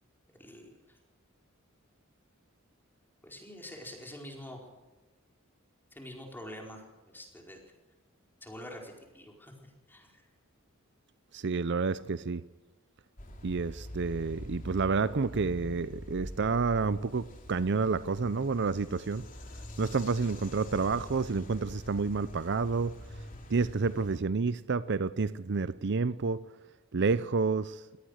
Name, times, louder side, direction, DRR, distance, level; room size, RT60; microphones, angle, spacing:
voice 1, 0.4-0.7 3.2-4.7 5.9-6.8 7.1-7.6 8.4-9.5 9.9-10.2, left 1 dB, 10° left, 4.6 m, -45 dB
voice 2, 11.3-12.4 13.4-19.2 19.8-22.9 23.5-26.4 26.9-27.8, right 4 dB, 55° right, 0.6 m, -29 dB
sound 1, 13.2-24.2, left 1 dB, 40° left, 3.4 m, -45 dB
23.5 x 18.0 x 6.5 m
head